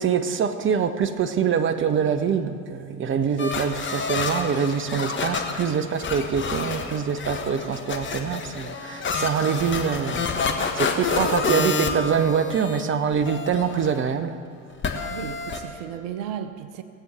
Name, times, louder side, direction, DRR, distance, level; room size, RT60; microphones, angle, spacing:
voice 1, 0.0-14.4, right 7 dB, 30° right, 10 dB, 1.0 m, -25 dB
sound 1, 3.4-12.8 13.1-14.0 14.8-15.6, left 4 dB, 25° left, 1.5 m, -28 dB
voice 2, 15.0-16.8, right 9 dB, 65° right, 10 dB, 0.8 m, -34 dB
19.0 x 8.0 x 7.1 m, 2.6 s
hypercardioid pair, 70°, 41 cm